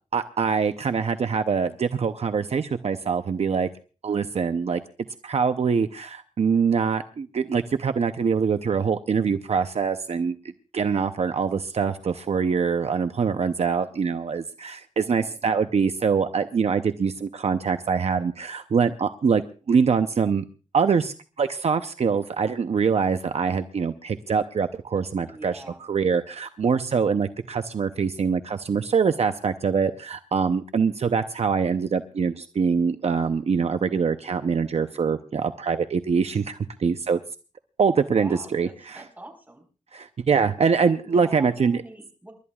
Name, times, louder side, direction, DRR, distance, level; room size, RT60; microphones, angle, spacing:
voice 1, 0.1-3.7 4.0-4.8 5.2-10.3 10.7-20.4 20.7-25.6 25.9-37.2 37.8-39.0 39.9-41.8, right 5 dB, 60° right, 9 dB, 0.7 m, -24 dB
voice 2, 25.2-25.8 38.1-39.6 41.0-42.3, right 1 dB, 15° right, 2 dB, 4.5 m, -44 dB
29.0 x 13.0 x 2.4 m, 0.35 s
wide cardioid pair, 120°, 12 cm